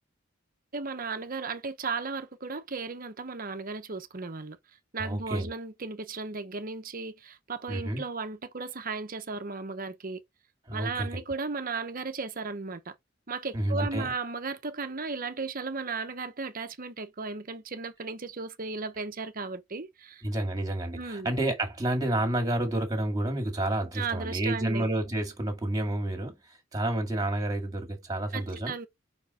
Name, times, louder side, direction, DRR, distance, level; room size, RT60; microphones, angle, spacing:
voice 1, 0.7-4.6 4.9-10.2 10.7-12.9 13.3-20.2 20.9-21.3 23.9-24.9 28.3-28.9, right 4 dB, 45° right, 1.0 m, -35 dB
voice 2, 5.0-5.5 7.7-8.0 10.7-11.2 13.5-14.1 20.2-26.4 26.7-28.7, right 1 dB, 20° right, 2.2 m, -29 dB
5.3 x 4.7 x 4.2 m
head